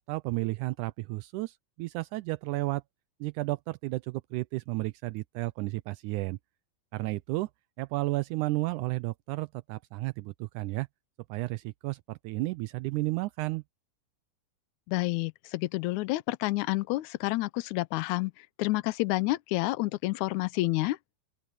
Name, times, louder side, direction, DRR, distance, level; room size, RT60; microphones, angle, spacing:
voice 1, 0.0-2.8 3.2-6.4 6.9-7.5 7.8-10.9 11.3-13.6, right 20 dB, 85° right, 1.7 m, -32 dB
voice 2, 14.9-18.3 18.6-21.0, left 19 dB, 85° left, 1.7 m, -29 dB
open air
omnidirectional pair, 4.1 m